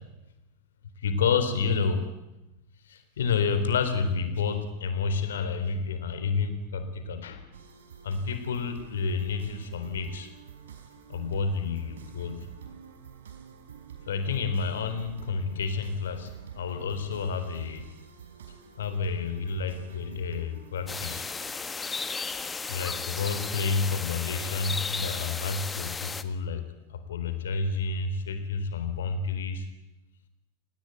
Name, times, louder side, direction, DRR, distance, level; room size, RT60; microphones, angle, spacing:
voice 1, 1.0-2.1 2.8-7.5 8.0-10.3 11.1-12.4 14.1-17.8 18.8-21.2 22.7-26.6 26.9-29.7, left 5 dB, 65° left, 10 dB, 3.8 m, -30 dB
sound 1, 7.5-21.5, right 8 dB, 65° right, 4.5 m, -47 dB
sound 2, 20.9-26.2, left 4 dB, 15° left, 1.5 m, -34 dB
28.0 x 19.5 x 9.4 m, 0.98 s
figure-of-eight pair, 90°, 0 cm